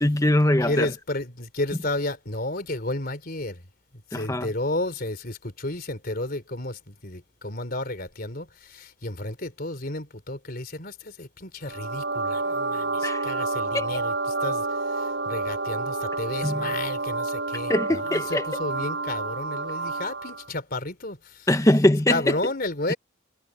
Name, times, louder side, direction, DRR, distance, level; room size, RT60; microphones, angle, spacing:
voice 1, 0.0-0.9 4.1-4.5 13.0-13.3 13.7-13.9 16.4-16.8 17.7-18.5 21.5-22.4 22.9-23.0, left 1 dB, 15° left, 0.9 m, -22 dB
voice 2, 0.6-3.6 4.1-14.1 14.4-14.6 15.3-21.2 22.1-23.0, left 2 dB, 50° left, 3.5 m, -32 dB
sound 1, 11.7-20.5, right 3 dB, 60° right, 6.5 m, -29 dB
head